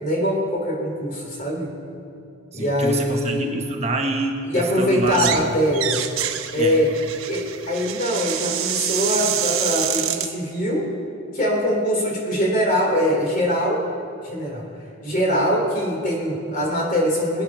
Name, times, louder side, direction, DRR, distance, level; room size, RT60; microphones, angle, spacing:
voice 1, 0.0-1.7 2.5-3.5 4.5-6.0 6.5-6.9 7.3-10.9 11.3-13.8 14.2-14.7 15.0-17.4, equal, 40° left, 0 dB, 3.2 m, -22 dB
voice 2, 2.5-5.4 6.6-6.8, right 2 dB, 30° right, 2 dB, 1.1 m, -26 dB
sound 1, 5.0-5.5 5.7-10.3, right 10 dB, 85° right, 1.1 m, -26 dB
22.0 x 9.1 x 6.1 m, 2.5 s
head